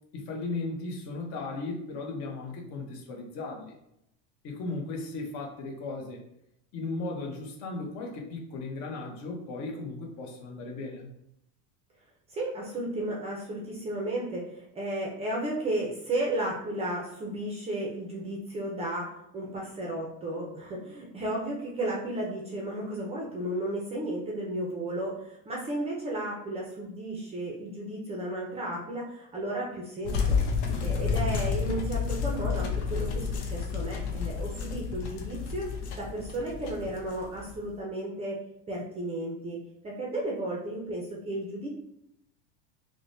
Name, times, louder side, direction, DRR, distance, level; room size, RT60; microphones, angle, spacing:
voice 1, 0.1-3.7 4.4-6.2 6.7-11.1, left 3 dB, 55° left, 1 dB, 0.9 m, -36 dB
voice 2, 12.3-19.1 19.3-30.4 30.8-38.4 38.7-41.7, right 1 dB, 20° right, -2 dB, 0.5 m, -34 dB
sound 1, 30.1-37.7, left 5 dB, 90° left, 0.8 m, -30 dB
4.7 x 2.1 x 2.6 m, 0.80 s
cardioid pair, 160°, 33 cm